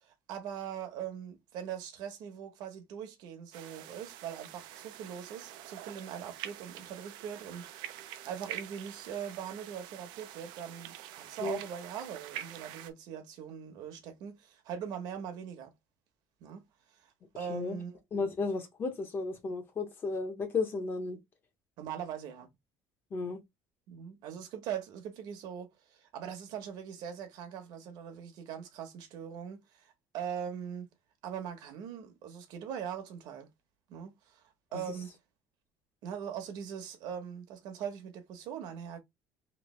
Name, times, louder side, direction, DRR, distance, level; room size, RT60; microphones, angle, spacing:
voice 1, 0.3-15.7 16.4-16.6 17.3-18.0 21.8-22.5 23.9-30.9 31.2-33.5 33.9-34.4 34.7-35.1 36.0-39.0, right 8 dB, 65° right, 1.1 m, -41 dB
sound 1, 3.5-12.9, right 11 dB, 80° right, 0.5 m, -46 dB
voice 2, 18.1-21.2 23.1-23.4, left 4 dB, 30° left, 0.8 m, -34 dB
3.2 x 3.1 x 3.1 m
cardioid pair, 170°, 8 cm